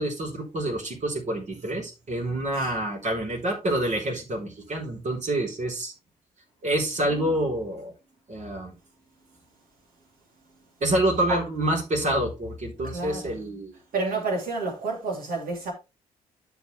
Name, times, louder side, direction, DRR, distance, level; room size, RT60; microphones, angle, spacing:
voice 1, 0.0-5.9 6.6-7.9 8.3-8.7 10.8-13.7, right 1 dB, 45° right, 4.1 m, -27 dB
voice 2, 12.8-13.4 13.9-15.7, right 3 dB, 60° right, 3.3 m, -30 dB
12.0 x 4.7 x 3.3 m
hypercardioid pair, 45°, 17 cm